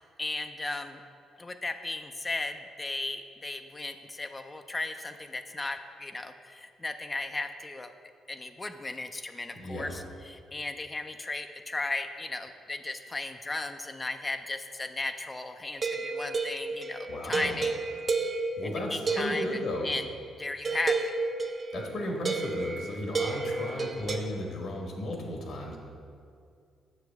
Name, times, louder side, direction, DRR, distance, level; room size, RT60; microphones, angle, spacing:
voice 1, 0.2-1.0 1.4-7.9 8.3-17.8 18.9-20.1 20.4-21.1, left 2 dB, 20° left, 7 dB, 0.4 m, -36 dB
voice 2, 9.5-10.0 17.1-17.5 18.6-19.9 21.7-25.8, left 1 dB, 70° left, 0 dB, 1.4 m, -35 dB
sound 1, 15.8-20.1 20.6-24.2, right 3 dB, 35° right, 0.6 m, -32 dB
7.8 x 6.3 x 3.5 m, 2.3 s
cardioid pair, 90°, 0 cm